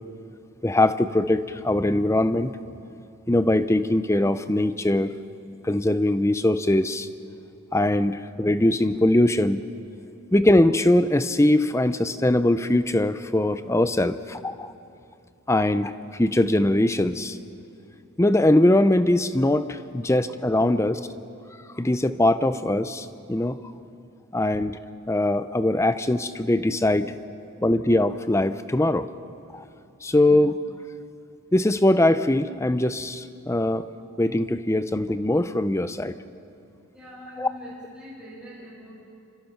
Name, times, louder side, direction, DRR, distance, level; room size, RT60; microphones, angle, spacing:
voice 1, 0.6-2.5 3.3-5.1 5.6-7.1 7.7-9.6 10.3-14.7 15.5-17.4 18.2-21.0 21.8-23.6 24.3-24.8 25.1-27.1 27.6-29.1 29.5-29.6 30.0-30.6 31.5-33.9 34.2-36.1 37.4-37.5, left 1 dB, 15° left, 12 dB, 0.5 m, -21 dB
voice 2, 36.9-38.9, equal, 5° right, -8 dB, 7.0 m, -43 dB
28.0 x 26.0 x 5.8 m, 2.6 s
head